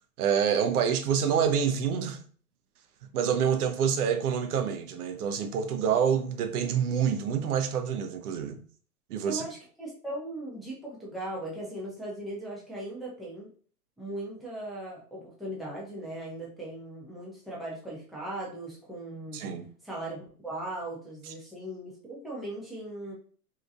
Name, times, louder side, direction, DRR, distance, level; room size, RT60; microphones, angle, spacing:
voice 1, 0.2-2.2 3.1-8.6 9.1-9.5 19.3-19.7, right 7 dB, 75° right, 0.6 m, -27 dB
voice 2, 9.3-13.5 14.0-19.4 19.8-23.1, right 1 dB, ahead, 0.6 m, -38 dB
2.8 x 2.2 x 2.4 m
hypercardioid pair, 120°, 45 cm